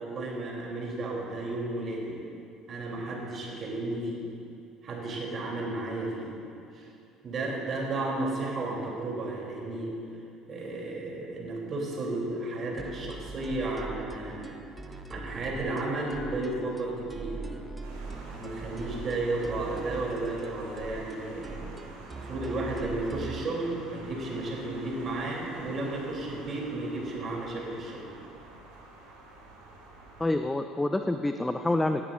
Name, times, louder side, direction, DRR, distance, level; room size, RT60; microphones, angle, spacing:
voice 1, 0.0-2.2 2.7-4.3 4.8-6.3 6.7-6.9 7.2-9.9 10.5-14.6 15.1-17.5 18.4-21.6 22.2-28.1, right 2 dB, 40° right, -2 dB, 3.3 m, -33 dB
envlving etude, 12.8-23.4, right 3 dB, 20° right, 1.0 m, -42 dB
sound 1, 17.8-30.3, right 2 dB, 65° right, 2.2 m, -47 dB
voice 2, 30.2-32.0, left 2 dB, 10° left, 7 dB, 0.5 m, -27 dB
17.5 x 13.5 x 2.6 m, 2.6 s
figure-of-eight pair, 60°, 0 cm